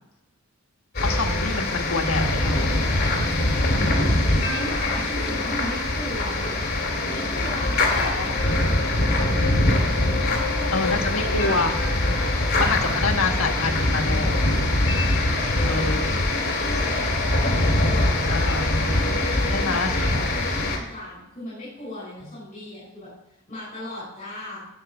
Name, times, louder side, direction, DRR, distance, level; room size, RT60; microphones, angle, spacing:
sound 1, 0.9-20.8, left 2 dB, 50° left, 2.6 m, -23 dB
voice 1, 1.0-2.7 7.9-8.4 10.7-11.8 12.6-14.5 15.6-16.1 18.3-18.7 19.5-19.9, left 3 dB, 85° left, 4 dB, 1.6 m, -26 dB
voice 2, 4.2-6.6 7.1-7.8 10.2-11.5 12.1-13.7 15.0-18.3 18.6-19.0 19.3-23.1 23.5-24.6, left 1 dB, 35° left, -8 dB, 5.6 m, -37 dB
17.5 x 7.2 x 4.5 m, 0.88 s
head